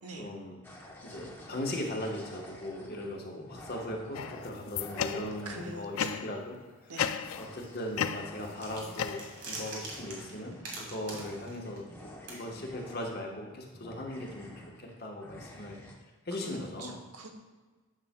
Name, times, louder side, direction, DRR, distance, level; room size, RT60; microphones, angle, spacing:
voice 1, 0.2-0.6 1.0-6.6 6.8-6.9 7.3-14.5 14.8-15.9 16.2-17.0, left 1 dB, 45° left, 0 dB, 1.1 m, -39 dB
sound 1, 0.6-6.1 6.7-9.3 9.8-13.4 13.7-14.9 15.2-15.9, left 1 dB, 10° left, 0.8 m, -50 dB
sound 2, 4.1-5.5 6.0-6.4 7.0-7.6 7.9-9.6, left 8 dB, 70° left, 0.3 m, -35 dB
voice 2, 5.4-6.2 6.9-7.3 16.4-17.3, right 2 dB, 90° right, 4 dB, 1.0 m, -44 dB
sound 3, 8.6-12.0 12.3-12.4, right 2 dB, 55° right, 1.8 m, -43 dB
9.9 x 6.7 x 2.2 m, 1.3 s
head